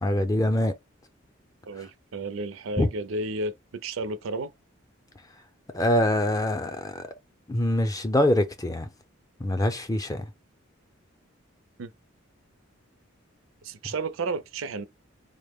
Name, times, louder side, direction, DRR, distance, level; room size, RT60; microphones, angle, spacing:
voice 1, 0.0-0.7 2.8-2.9 5.7-7.1 7.5-8.9 9.4-10.3, left 1 dB, 20° left, 0.5 m, -24 dB
voice 2, 1.7-4.5 11.8-11.9 13.6-14.9, right 2 dB, 85° right, 0.5 m, -32 dB
4.0 x 2.0 x 3.5 m
head